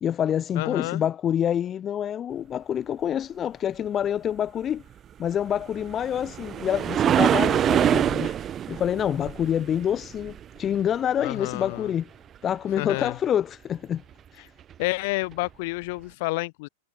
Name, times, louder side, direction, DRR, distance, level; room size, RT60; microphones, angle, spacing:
voice 1, 0.0-4.8 5.2-8.4 8.7-12.1 12.4-14.0 14.3-14.5, left 9 dB, 20° left, 0.8 m, -27 dB
voice 2, 0.6-1.0 11.2-11.9 12.8-13.2 14.8-16.7, left 24 dB, 50° left, 5.6 m, -29 dB
sound 1, 5.6-10.8 14.7-14.8 15.4-15.5, right 10 dB, 20° right, 2.1 m, -25 dB
supercardioid pair, 155°, 0 cm